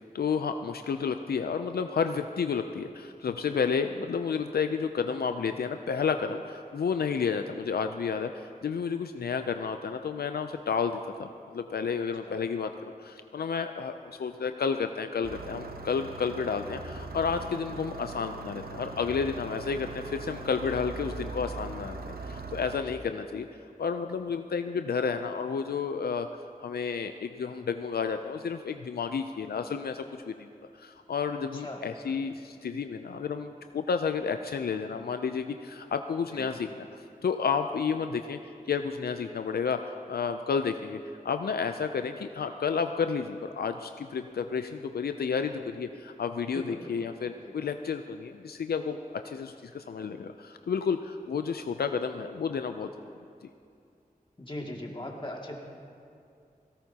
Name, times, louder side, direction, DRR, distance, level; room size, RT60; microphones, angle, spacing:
voice 1, 0.1-13.9 14.2-23.5 23.8-26.3 26.6-30.5 30.7-38.4 38.7-41.0 41.2-52.9, left 6 dB, 85° left, 7 dB, 0.4 m, -31 dB
Engine starting, 15.2-22.8, right 3 dB, 80° right, 0.8 m, -40 dB
voice 2, 31.5-31.8 32.1-32.3 36.3-36.5 46.5-47.1 47.4-47.7 54.4-55.6, left 1 dB, 30° left, -1 dB, 2.2 m, -40 dB
17.5 x 17.5 x 2.8 m, 2.4 s
cardioid pair, 40°, 16 cm